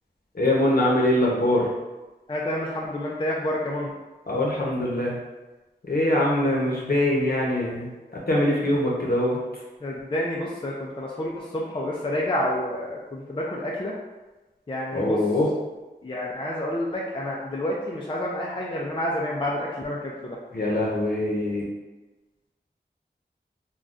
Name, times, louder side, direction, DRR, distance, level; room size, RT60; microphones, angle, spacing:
voice 1, 0.3-1.7 4.3-5.2 5.9-9.4 14.9-15.5 20.5-21.6, left 1 dB, 60° left, -4 dB, 0.8 m, -23 dB
voice 2, 2.3-3.9 9.8-14.0 14.7-15.2 16.0-20.4, left 1 dB, 30° left, -3 dB, 0.4 m, -29 dB
3.3 x 2.3 x 2.5 m, 1.1 s
wide cardioid pair, 50°, 18 cm